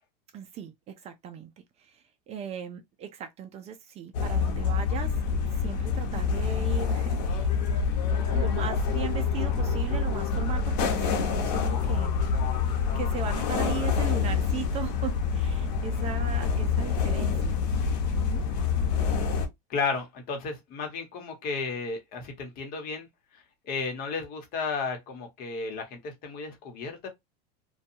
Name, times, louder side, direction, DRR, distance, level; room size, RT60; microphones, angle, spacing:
voice 1, 0.3-1.5 1.8-5.2 5.5-7.5 8.0-12.2 13.0-17.6 18.2-18.4, right 8 dB, 30° right, 0.4 m, -38 dB
sound 1, 4.1-19.5, left 6 dB, 75° left, 0.7 m, -27 dB
voice 2, 19.7-23.1 23.7-27.1, left 4 dB, 45° left, 1.0 m, -33 dB
2.6 x 2.2 x 2.7 m
supercardioid pair, 135°, 21 cm